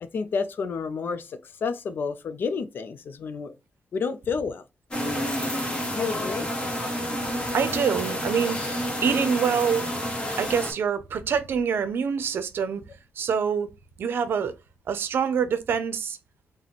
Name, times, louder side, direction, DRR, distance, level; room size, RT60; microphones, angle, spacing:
voice 1, 0.0-3.5 3.9-4.6 5.9-6.5, left 5 dB, 65° left, 0.4 m, -30 dB
sound 1, 4.9-10.7, equal, 25° left, 1.2 m, -29 dB
voice 2, 5.5-5.9 7.1-7.2 7.5-8.8 9.0-9.8 10.4-12.8 13.2-13.7 14.0-14.5 14.9-16.2, right 7 dB, 70° right, 0.5 m, -26 dB
4.0 x 2.1 x 2.9 m
cardioid pair, 80°, 4 cm